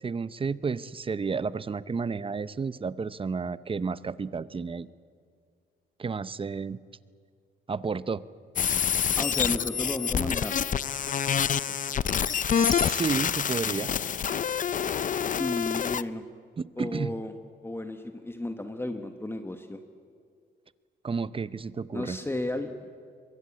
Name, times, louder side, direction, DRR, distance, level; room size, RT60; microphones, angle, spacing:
voice 1, 0.0-4.9 6.0-6.8 7.7-8.2 11.7-11.8 12.5-13.9 16.6-17.1 21.0-22.2, right 5 dB, 25° right, 17 dB, 0.7 m, -31 dB
sound 1, 8.6-16.0, left 8 dB, 40° left, 0.6 m, -27 dB
voice 2, 9.2-10.6 15.4-16.2 16.8-17.3 17.6-19.8 21.9-22.9, left 1 dB, 10° left, 6 dB, 1.4 m, -33 dB
23.5 x 21.5 x 8.5 m, 2.2 s
cardioid pair, 90°, 20 cm